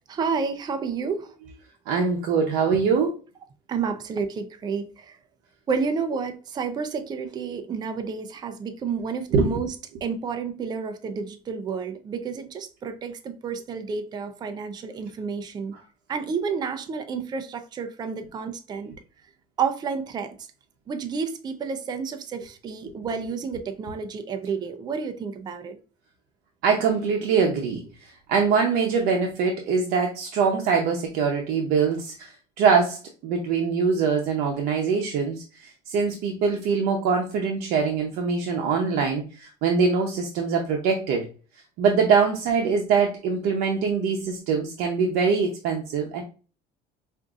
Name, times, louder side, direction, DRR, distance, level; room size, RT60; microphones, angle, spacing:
voice 1, 0.1-1.3 3.7-5.2 5.7-9.7 10.0-15.8 16.1-18.9 19.6-20.4 20.9-25.8, right 5 dB, 25° right, 0.5 m, -30 dB
voice 2, 1.9-3.1 9.3-9.5 22.9-23.0 26.6-41.3 41.8-46.2, right 5 dB, 70° right, 0.7 m, -23 dB
5.0 x 2.6 x 2.4 m
cardioid pair, 130°, 16 cm